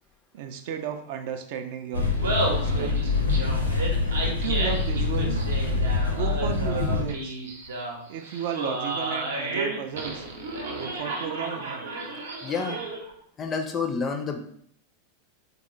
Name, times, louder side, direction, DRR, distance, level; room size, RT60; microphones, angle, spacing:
voice 1, 0.3-3.1 4.2-5.4 6.1-7.4 8.1-10.3 10.7-11.9, right 8 dB, 50° right, 6 dB, 0.3 m, -34 dB
sound 1, 1.9-7.0, left 4 dB, 80° left, 0.6 m, -25 dB
Laughter, 2.0-13.1, right 2 dB, 65° right, 0.7 m, -32 dB
voice 2, 12.4-12.8 13.4-14.4, left 5 dB, 25° left, 4 dB, 0.4 m, -29 dB
3.6 x 2.2 x 3.0 m, 0.66 s
figure-of-eight pair, 90°, 0 cm